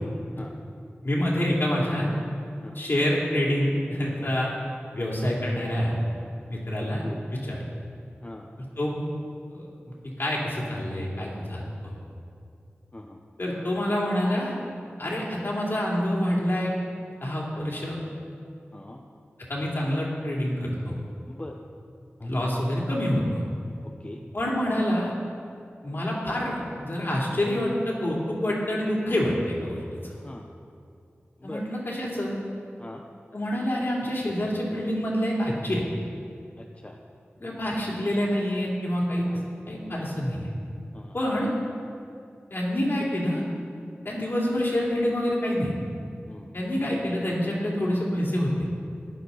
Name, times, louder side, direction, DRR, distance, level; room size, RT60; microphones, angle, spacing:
voice 1, 1.0-2.1 2.7-4.5 4.9-6.0 6.5-7.0 7.5-7.6 8.6-9.0 9.5-9.7 10.2-11.9 13.4-14.6 15.0-16.7 17.2-18.0 19.5-21.0 22.2-23.4 24.3-25.1 25.8-29.8 30.0-30.1 31.4-32.3 33.3-35.8 37.4-39.2 39.7-40.5 41.1-41.5 42.5-43.4 44.0-45.7 46.5-48.6, equal, 55° left, -4 dB, 3.0 m, -27 dB
voice 2, 6.8-7.3 8.2-8.5 12.9-13.2 17.5-17.7 18.7-19.0 21.3-21.6 22.2-22.3 23.8-24.2 30.0-30.5 31.4-31.7 32.8-33.0 36.6-37.0 39.3-39.5 40.9-41.2 44.1-44.2 46.3-46.5, left 1 dB, 30° left, 1 dB, 0.9 m, -42 dB
14.5 x 9.9 x 4.0 m, 2.4 s
cardioid pair, 45°, 4 cm